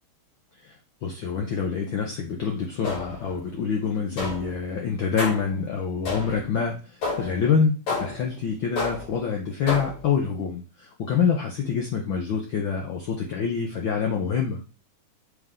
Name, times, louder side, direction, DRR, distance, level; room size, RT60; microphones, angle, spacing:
voice 1, 1.0-6.8 7.2-14.6, left 6 dB, 90° left, 0 dB, 1.0 m, -26 dB
sound 1, 2.8-3.3 4.2-4.6 5.2-5.6 6.0-6.5 7.0-7.4 7.9-8.3 8.8-9.2 9.7-10.1, left 3 dB, 70° left, 5.0 m, -31 dB
7.5 x 3.5 x 3.7 m, 0.33 s
omnidirectional pair, 3.3 m